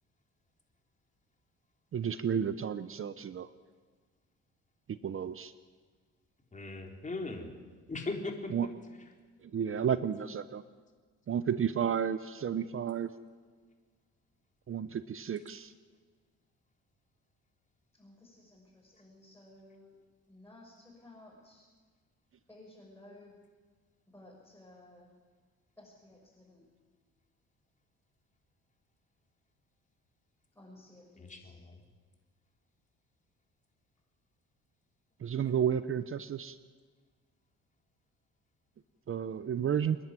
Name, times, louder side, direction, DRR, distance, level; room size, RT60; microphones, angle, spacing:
voice 1, 1.9-3.5 4.9-5.5 8.5-8.7 9.4-10.6 11.3-13.1 14.7-15.7 35.2-36.6 39.1-40.0, right 8 dB, 45° right, 13 dB, 0.8 m, -32 dB
voice 2, 6.5-7.5 7.9-8.5 18.9-19.0 31.2-31.8, left 3 dB, 25° left, 2 dB, 4.0 m, -39 dB
voice 3, 17.9-19.9 20.3-21.7 22.5-23.4 24.1-25.1 25.8-26.6 30.5-31.5, left 1 dB, 10° left, -5 dB, 6.5 m, -56 dB
27.5 x 10.5 x 9.6 m, 1.5 s
cardioid pair, 90°, 30 cm